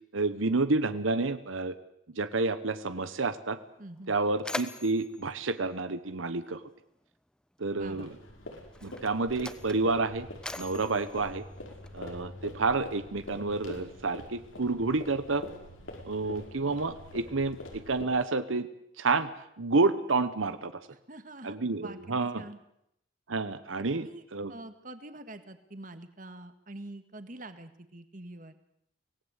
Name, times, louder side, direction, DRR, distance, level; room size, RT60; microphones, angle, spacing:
voice 1, 0.1-1.7 2.1-3.6 4.1-6.6 7.6-8.1 8.8-10.3 10.6-11.4 11.9-15.4 16.0-18.7 19.0-19.3 19.6-20.8 21.4-22.5 23.3-24.5, right 3 dB, 85° right, 12 dB, 1.1 m, -29 dB
Mechanisms, 3.5-3.6 3.9-6.7 7.7-7.8 8.6-12.2, left 1 dB, 5° left, 0.9 m, -43 dB
voice 2, 3.8-4.2 7.8-8.1 20.9-22.6 24.0-28.6, right 2 dB, 40° right, 10 dB, 1.8 m, -46 dB
sound 1, 7.8-18.1, left 1 dB, 90° left, 5.2 m, -45 dB
25.0 x 18.5 x 8.2 m, 0.78 s
head